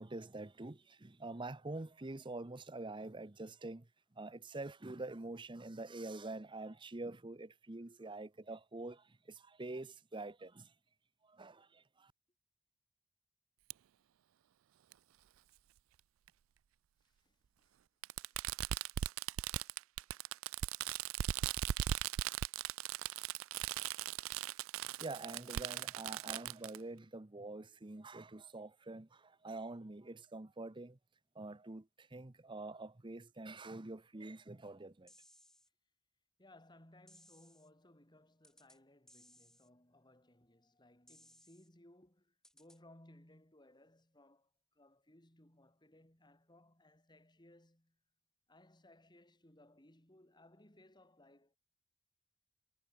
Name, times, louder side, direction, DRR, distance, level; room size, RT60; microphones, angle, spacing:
voice 1, 0.0-3.9 4.1-10.7 11.2-12.1 24.8-31.0 31.3-35.1, right 2 dB, 25° right, 0.8 m, -46 dB
Fireworks, 13.7-13.8 14.9-15.0 16.3-16.4 18.0-26.8, right 11 dB, 85° right, 0.4 m, -38 dB
voice 2, 17.0-17.8 18.1-18.7 20.8-21.0 36.4-48.0 48.5-51.6, left 1 dB, 20° left, 4.3 m, -64 dB
sound 1, 35.1-35.7 37.1-37.7 38.4-38.8 39.1-39.7 41.1-41.7 42.4-42.8, left 1 dB, 5° left, 7.0 m, -64 dB
head